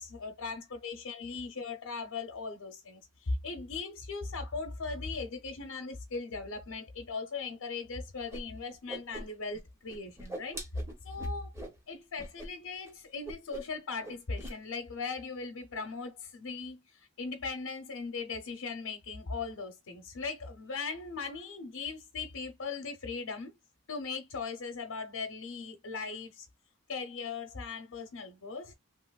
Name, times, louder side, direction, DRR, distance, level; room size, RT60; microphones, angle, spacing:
voice 1, 0.0-10.6 11.0-11.5 11.9-23.5 23.9-26.5 26.9-28.7, left 4 dB, 80° left, 0.6 m, -39 dB
Whoosh swoosh swish, 8.3-8.4 8.7-9.6 9.9-11.8 12.2-12.5 12.7-12.9 13.2-13.8 14.0-14.6, right 1 dB, 10° right, 0.7 m, -42 dB
3.0 x 2.9 x 2.2 m
head